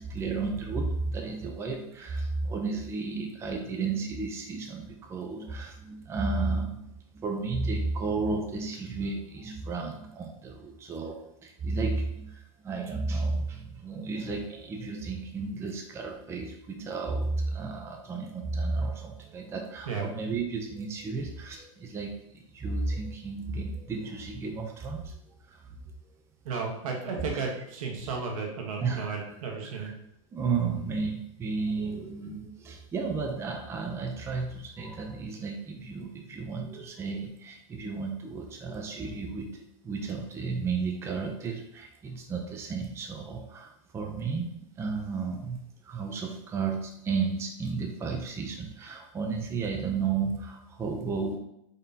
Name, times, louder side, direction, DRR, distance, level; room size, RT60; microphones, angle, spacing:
voice 1, 0.0-6.9 7.1-25.2 25.5-25.8 28.8-29.2 29.7-29.9 30.3-39.5 39.8-44.5 44.8-51.4, right 4 dB, 15° right, 2 dB, 0.4 m, -33 dB
voice 2, 26.4-29.9, right 5 dB, 80° right, 1 dB, 1.1 m, -33 dB
3.9 x 3.5 x 2.7 m, 0.78 s
supercardioid pair, 135°, 18 cm